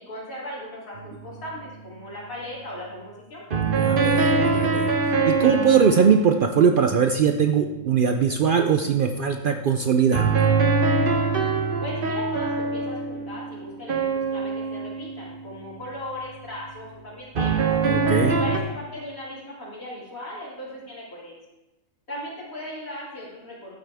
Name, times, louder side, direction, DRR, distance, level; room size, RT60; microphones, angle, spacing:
voice 1, 0.0-3.4 11.8-17.7 18.3-21.3 22.1-23.7, left 1 dB, 65° left, -7 dB, 3.5 m, -37 dB
sound 1, 1.0-1.4 3.5-7.6 10.1-15.7 17.4-18.6, right 4 dB, 40° right, 1.0 m, -24 dB
voice 2, 3.6-10.3 17.8-18.4, right 6 dB, 80° right, 5 dB, 0.4 m, -21 dB
13.0 x 7.6 x 3.5 m, 1.0 s
omnidirectional pair, 1.6 m